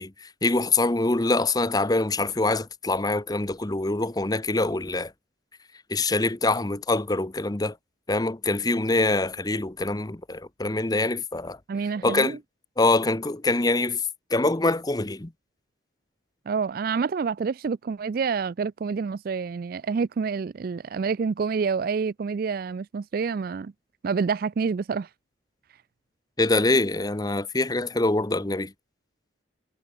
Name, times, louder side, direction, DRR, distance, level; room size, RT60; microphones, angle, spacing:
voice 1, 0.0-5.1 5.9-7.8 8.1-11.6 12.0-12.4 12.8-14.0 14.3-15.3 26.4-28.7, left 2 dB, 20° left, 0.8 m, -24 dB
voice 2, 11.7-12.4 16.5-23.7 24.0-25.1, right 5 dB, 50° right, 0.4 m, -28 dB
head